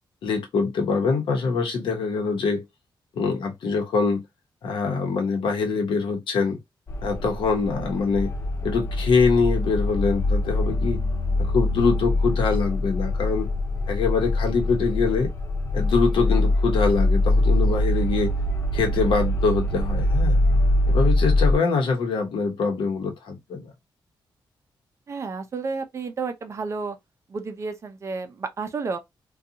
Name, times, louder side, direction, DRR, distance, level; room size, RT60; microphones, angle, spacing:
voice 1, 0.2-2.6 3.1-4.2 4.6-6.6 7.0-8.3 8.6-11.0 11.4-13.5 13.9-15.3 15.7-18.3 18.7-20.4 20.9-23.7, left 4 dB, 75° left, 0.9 m, -24 dB
sound 1, 6.9-21.6, left 1 dB, 30° left, 0.3 m, -23 dB
voice 2, 25.1-27.0 27.3-29.0, right 4 dB, 35° right, 0.4 m, -31 dB
2.5 x 2.3 x 2.7 m
wide cardioid pair, 170°, 8 cm